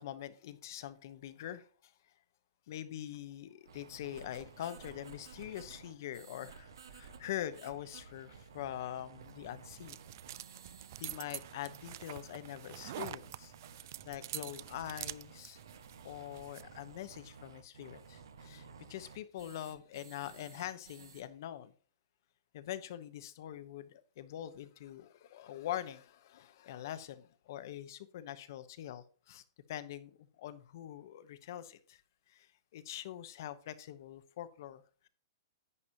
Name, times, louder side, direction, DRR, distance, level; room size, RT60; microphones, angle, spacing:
voice 1, 0.0-2.1 2.7-10.0 11.0-15.6 16.0-21.7 22.5-32.0 32.3-35.1, left 12 dB, 55° left, 1.1 m, -44 dB
sound 1, 3.6-21.2, right 6 dB, 85° right, 1.3 m, -54 dB
sound 2, 9.2-16.7, right 14 dB, 50° right, 0.3 m, -47 dB
11.0 x 8.6 x 2.9 m
hypercardioid pair, 155°, 2 cm